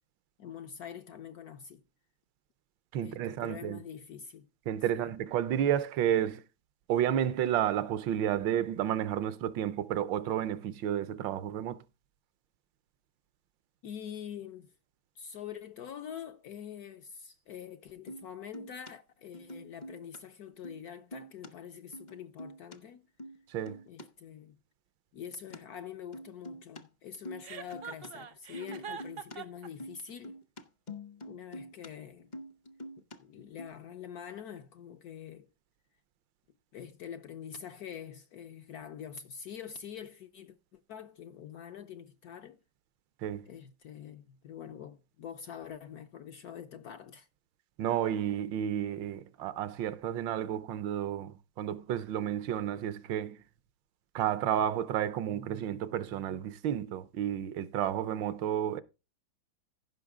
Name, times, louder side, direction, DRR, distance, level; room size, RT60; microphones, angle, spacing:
voice 1, 0.4-1.8 3.0-4.5 4.9-5.1 13.8-14.7 15.2-23.0 23.9-24.6 25.1-30.4 31.2-32.3 33.0-35.5 36.7-42.6 43.5-47.3, left 8 dB, 70° left, 0.9 m, -45 dB
voice 2, 2.9-3.8 4.7-6.4 6.9-11.8 23.5-23.8 43.2-43.5 47.8-53.4 54.1-58.8, right 10 dB, 75° right, 1.3 m, -31 dB
sound 1, 18.1-18.3 18.5-18.9 19.3-20.2 20.5-20.8 21.1-21.5 21.9-22.8 23.2-23.4 23.7-24.0 25.5-25.6 26.1-26.8 27.1-28.1 28.5-29.4 29.6-31.9 32.2-33.2 33.6-33.7, equal, 40° left, 0.6 m, -45 dB
Chuckle chortle, 27.4-29.7, right 7 dB, 50° right, 0.7 m, -43 dB
15.0 x 5.9 x 3.6 m
omnidirectional pair, 2.1 m